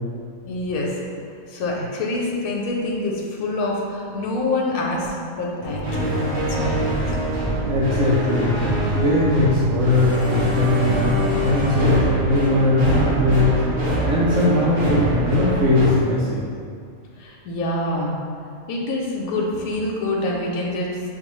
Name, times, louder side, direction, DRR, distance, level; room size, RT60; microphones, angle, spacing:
voice 1, 0.4-1.0 1.5-7.2 17.2-18.2 18.7-21.0, left 2 dB, 85° left, -3 dB, 1.1 m, -26 dB
sound 1, 5.6-15.9, right 1 dB, 45° right, 1.3 m, -24 dB
voice 2, 7.6-8.6 8.9-13.6 14.1-16.4, left 1 dB, 65° right, -7 dB, 0.9 m, -19 dB
6.5 x 2.5 x 3.0 m, 2.3 s
omnidirectional pair, 1.5 m